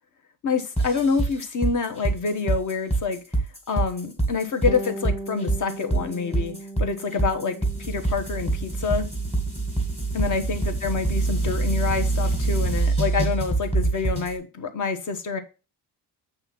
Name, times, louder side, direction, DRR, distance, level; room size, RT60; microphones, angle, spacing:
voice 1, 0.4-3.2 3.7-6.5 6.8-7.6 7.9-9.1 10.1-15.4, left 5 dB, 45° left, 8 dB, 1.1 m, -27 dB
sound 1, 0.8-14.3, right 3 dB, 15° left, 1.9 m, -25 dB
Bass guitar, 4.7-14.3, right 2 dB, 15° right, 0.5 m, -41 dB
7.9 x 3.4 x 5.8 m, 0.31 s
cardioid pair, 180°, 42 cm